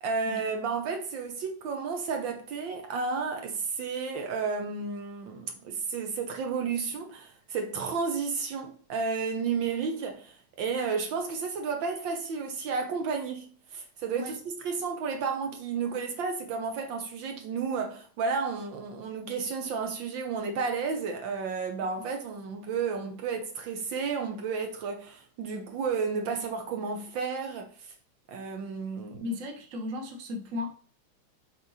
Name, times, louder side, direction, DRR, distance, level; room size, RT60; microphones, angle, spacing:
voice 1, 0.0-27.7 28.3-29.3, right 5 dB, 70° right, 1.5 m, -32 dB
voice 2, 29.2-30.7, left 3 dB, 45° right, 1.2 m, -35 dB
6.1 x 3.9 x 4.0 m
omnidirectional pair, 2.2 m